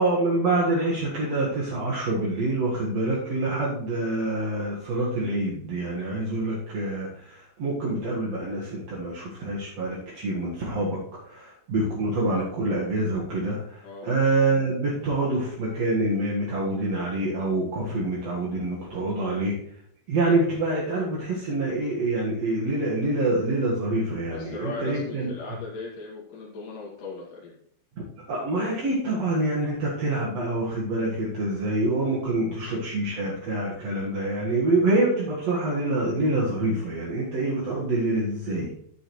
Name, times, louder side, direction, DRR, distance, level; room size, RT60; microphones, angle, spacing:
voice 1, 0.0-19.6 20.1-25.3 28.3-38.7, right 2 dB, 50° right, -6 dB, 2.0 m, -26 dB
voice 2, 24.3-27.5 32.4-32.6, left 3 dB, 50° left, -6 dB, 3.6 m, -38 dB
12.5 x 9.9 x 3.2 m, 0.67 s
omnidirectional pair, 5.3 m